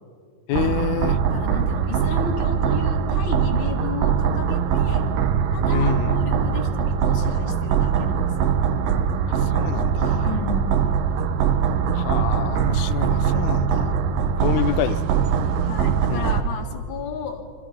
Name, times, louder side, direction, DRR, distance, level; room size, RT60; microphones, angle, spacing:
voice 1, 0.5-1.2 5.7-6.1 9.3-10.3 11.9-14.0 14.4-15.1 16.1-16.3, left 13 dB, 75° left, 14 dB, 2.0 m, -28 dB
sound 1, 0.5-16.4, right 7 dB, 85° right, 2.7 m, -22 dB
voice 2, 1.2-5.1 5.5-8.5 10.2-10.8 13.5-13.7 14.5-15.0 15.6-17.5, left 5 dB, 40° left, 0 dB, 2.3 m, -34 dB
29.0 x 24.5 x 5.1 m, 2.4 s
omnidirectional pair, 3.8 m